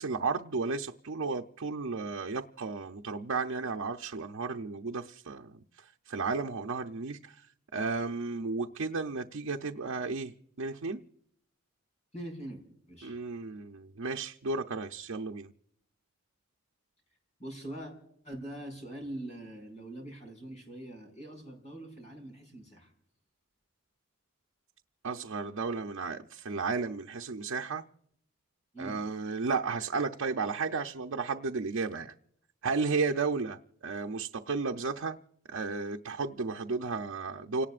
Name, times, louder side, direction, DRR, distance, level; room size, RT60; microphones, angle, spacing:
voice 1, 0.0-7.5 7.7-11.0 13.0-15.5 25.0-27.8 28.8-32.1 32.6-35.2 35.5-37.7, right 4 dB, 80° right, 0.7 m, -33 dB
voice 2, 12.1-12.6 12.9-13.2 17.4-17.9 18.2-22.9 28.7-29.0, right 1 dB, 35° left, 5.7 m, -43 dB
30.0 x 18.5 x 2.5 m
head